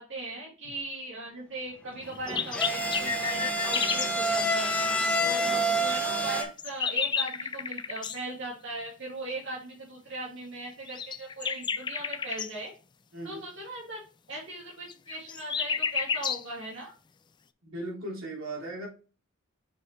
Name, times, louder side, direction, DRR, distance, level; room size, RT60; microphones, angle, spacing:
voice 1, 0.0-4.8 5.2-12.7 13.2-14.0 14.3-16.9, right 1 dB, 60° right, -4 dB, 2.5 m, -39 dB
sound 1, 2.1-4.1 6.2-8.2 10.9-12.5 14.9-16.4, left 6 dB, 20° left, 0.3 m, -31 dB
sound 2, 2.2-6.4, right 1 dB, 5° left, 1.0 m, -28 dB
voice 2, 5.2-5.5 13.1-13.4 17.6-18.9, right 1 dB, 80° right, -2 dB, 3.4 m, -38 dB
6.5 x 5.3 x 3.2 m, 0.34 s
head